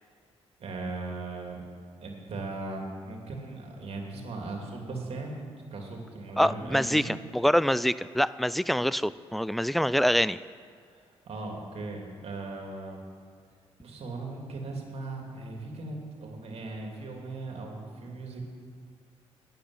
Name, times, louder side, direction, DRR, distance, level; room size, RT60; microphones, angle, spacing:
voice 1, 0.6-1.6 2.0-5.4 5.7-7.1 11.3-13.0 13.8-18.5, right 3 dB, 60° right, 1 dB, 2.8 m, -38 dB
voice 2, 6.4-10.4, equal, ahead, 17 dB, 0.4 m, -25 dB
9.7 x 8.9 x 9.8 m, 2.2 s
cardioid pair, 70°, 12 cm